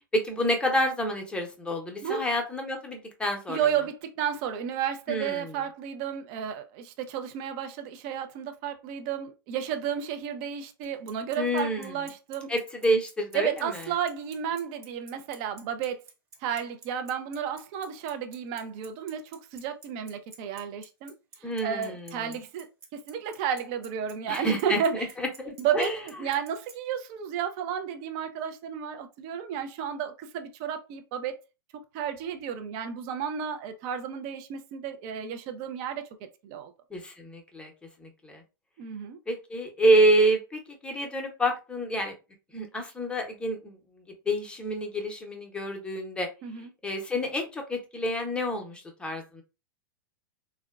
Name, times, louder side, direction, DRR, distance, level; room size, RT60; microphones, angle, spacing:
voice 1, 0.1-3.6 5.1-5.5 11.4-11.9 12.5-13.5 21.4-22.1 24.3-26.0 36.9-37.7 38.0-38.4 39.3-42.1 42.5-43.8 44.3-46.3 46.8-49.4, right 1 dB, 10° left, 0.7 m, -28 dB
voice 2, 3.5-12.5 13.3-16.0 16.4-21.1 21.4-22.7 22.9-25.1 25.6-25.9 26.2-31.4 31.9-36.1 36.4-36.7 38.8-39.2 46.4-46.7, right 8 dB, 40° right, 0.5 m, -32 dB
Bicycle, 10.8-26.7, right 4 dB, 25° right, 1.1 m, -49 dB
3.6 x 2.2 x 2.3 m
figure-of-eight pair, 100°, 12 cm